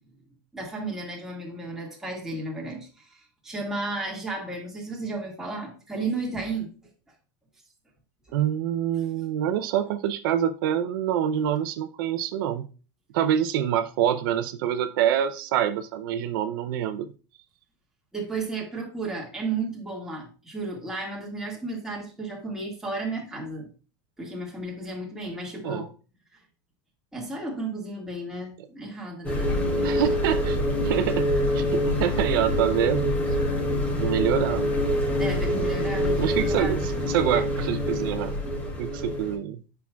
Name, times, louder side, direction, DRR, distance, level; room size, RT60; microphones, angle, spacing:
voice 1, 0.5-6.7 18.1-23.7 24.2-25.9 27.1-30.0 35.2-36.7, right 2 dB, 5° right, -3 dB, 1.7 m, -33 dB
voice 2, 8.3-12.7 13.1-17.1 25.6-25.8 29.8-31.3 31.5-33.2 33.9-34.8 36.2-38.3 38.8-39.6, right 10 dB, 75° right, 10 dB, 0.5 m, -26 dB
sound 1, 29.2-39.4, left 1 dB, 15° left, 1.2 m, -25 dB
8.4 x 5.9 x 2.3 m, 0.35 s
supercardioid pair, 160°, 12 cm